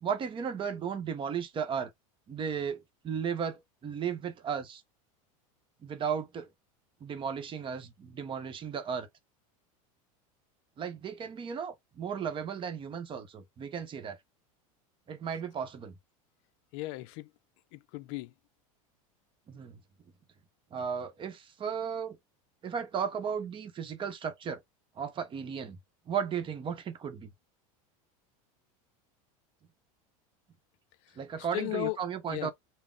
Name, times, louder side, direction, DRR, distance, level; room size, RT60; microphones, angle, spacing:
voice 1, 0.0-1.9 2.3-4.8 5.8-6.5 7.0-9.1 10.8-14.2 15.1-15.9 19.5-19.8 20.7-22.2 22.6-24.6 25.0-25.8 26.1-27.3 31.2-32.5, right 7 dB, 30° right, 0.8 m, -35 dB
voice 2, 16.7-17.3 17.7-18.3 31.0-32.0 32.3-32.5, left 21 dB, 60° left, 0.4 m, -36 dB
3.6 x 2.1 x 3.8 m
supercardioid pair, 120°, 18 cm